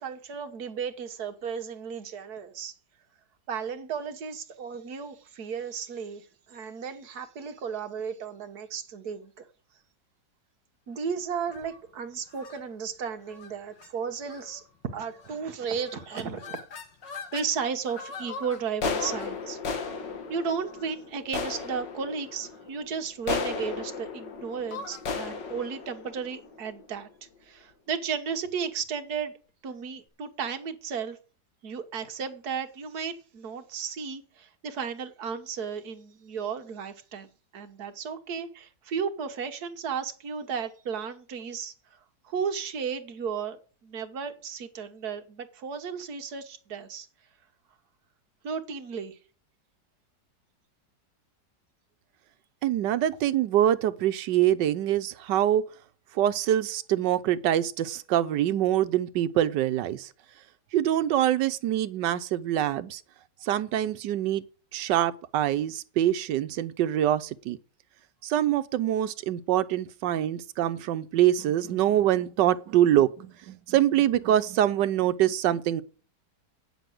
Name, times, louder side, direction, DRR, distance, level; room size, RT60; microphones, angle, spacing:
voice 1, 0.0-2.7 3.5-9.4 10.9-16.6 17.3-19.6 20.3-27.1 27.4-29.3 29.6-31.2 31.6-42.0 42.2-47.1 48.4-49.2, right 6 dB, 60° right, 1.6 m, -34 dB
sound 1, 11.4-11.8 12.3-12.6 13.3-13.5 13.8-13.9 14.2-14.6 15.2-15.5 15.8-17.5 17.9-27.1, left 5 dB, 80° left, 2.0 m, -36 dB
voice 2, 52.6-55.6 56.1-60.1 60.7-63.0 63.4-64.4 64.7-67.6 68.2-75.8, right 12 dB, 80° right, 1.4 m, -25 dB
9.1 x 6.8 x 7.8 m
omnidirectional pair, 1.9 m